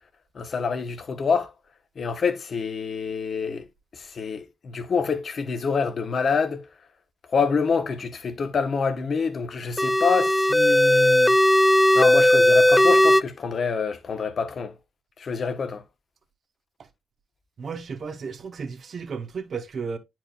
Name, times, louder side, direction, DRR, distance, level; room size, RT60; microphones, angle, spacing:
voice 1, 0.3-1.5 2.0-3.7 3.9-6.7 7.3-11.3 11.9-14.7 15.2-15.8, left 5 dB, 50° left, 1.0 m, -26 dB
sound 1, 9.8-13.2, left 1 dB, 10° left, 0.4 m, -17 dB
voice 2, 17.6-20.0, right 5 dB, 55° right, 1.0 m, -33 dB
10.0 x 4.5 x 2.4 m
hypercardioid pair, 40°, 0 cm